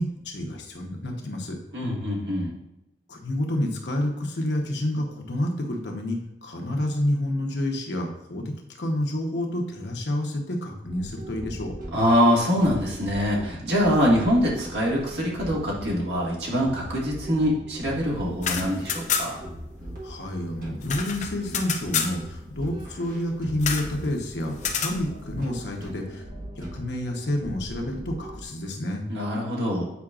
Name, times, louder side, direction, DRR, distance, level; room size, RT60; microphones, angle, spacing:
voice 1, 0.0-1.5 3.1-8.4 8.8-11.7 20.0-26.2 26.6-29.1, left 1 dB, 75° left, 1 dB, 1.0 m, -29 dB
voice 2, 1.7-2.5 11.9-19.4 29.1-29.9, equal, 75° right, -3 dB, 1.7 m, -24 dB
sound 1, 10.8-28.4, equal, 55° right, 1.4 m, -40 dB
sound 2, 18.3-19.5 19.8-19.9 20.2-22.2 23.6-23.9 24.6-25.0, left 6 dB, 45° left, 0.6 m, -28 dB
8.2 x 4.9 x 2.4 m, 0.86 s
head